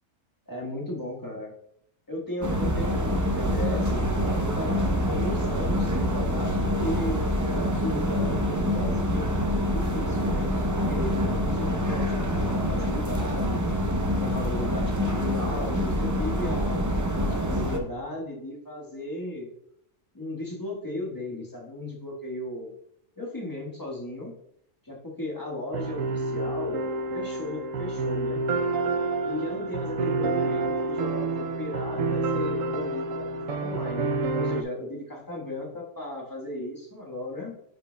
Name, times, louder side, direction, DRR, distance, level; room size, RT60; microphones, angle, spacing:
voice 1, 0.5-1.5 2.1-4.0 4.4-10.5 10.9-13.6 14.2-16.9 17.2-19.5 20.1-22.7 23.2-24.3 24.8-26.8 27.1-28.4 29.2-37.6, left 1 dB, 15° left, -2 dB, 1.4 m, -36 dB
sound 1, 2.4-17.8, equal, 25° right, 0.4 m, -26 dB
Brass instrument, 2.8-5.9, left 1 dB, 40° right, 2.5 m, -44 dB
sound 2, 25.7-34.6, right 3 dB, 80° right, 1.0 m, -28 dB
10.0 x 5.2 x 2.2 m, 0.72 s
omnidirectional pair, 1.4 m